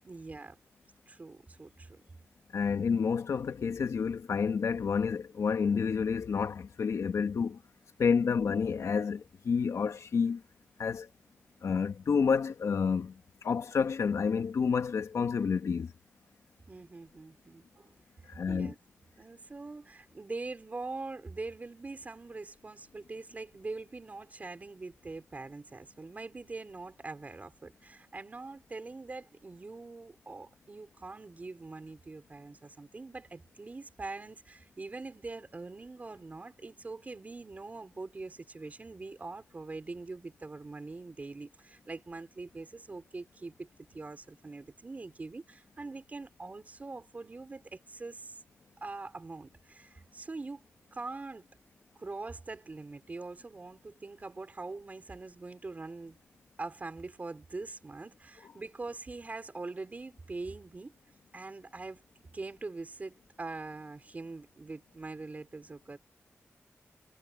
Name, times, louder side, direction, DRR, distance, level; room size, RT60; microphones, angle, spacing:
voice 1, 0.0-0.6 1.1-2.0 16.7-17.9 18.5-18.8 19.2-43.7 43.9-48.4 48.8-50.7 50.9-51.4 51.9-56.2 56.6-60.9 61.3-62.0 62.3-66.0, right 3 dB, 30° right, 4.7 m, -43 dB
voice 2, 2.5-7.6 8.0-10.4 10.8-11.1 11.6-15.9 18.3-18.7, left 6 dB, 90° left, 1.8 m, -29 dB
wide cardioid pair, 155°, 5 cm